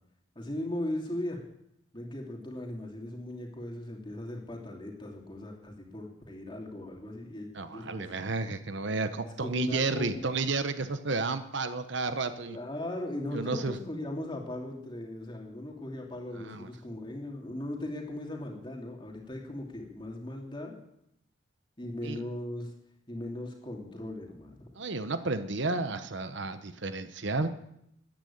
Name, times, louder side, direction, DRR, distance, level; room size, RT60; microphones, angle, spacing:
voice 1, 0.3-1.4 1.9-8.1 9.4-10.3 12.5-20.8 21.8-22.7 23.1-24.7, left 1 dB, 25° left, 0 dB, 2.9 m, -38 dB
voice 2, 7.5-12.6 13.3-13.8 16.4-16.7 22.0-22.2 24.8-27.6, right 3 dB, 60° right, 10 dB, 0.9 m, -32 dB
14.5 x 10.5 x 8.6 m, 0.78 s
head